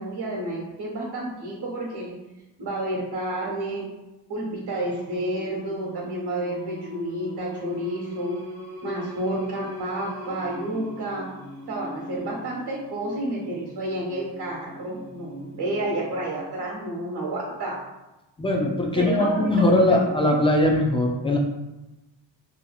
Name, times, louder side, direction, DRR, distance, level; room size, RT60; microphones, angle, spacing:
voice 1, 0.0-2.2 2.6-3.9 4.3-8.4 8.8-11.3 11.7-17.8 18.9-20.1, right 1 dB, 60° right, -4 dB, 1.1 m, -30 dB
Singing, 4.9-16.6, left 1 dB, 25° right, 1.1 m, -41 dB
voice 2, 18.4-21.4, left 1 dB, 15° left, -1 dB, 0.3 m, -20 dB
2.9 x 2.6 x 2.3 m, 1.0 s
cardioid pair, 85°, 46 cm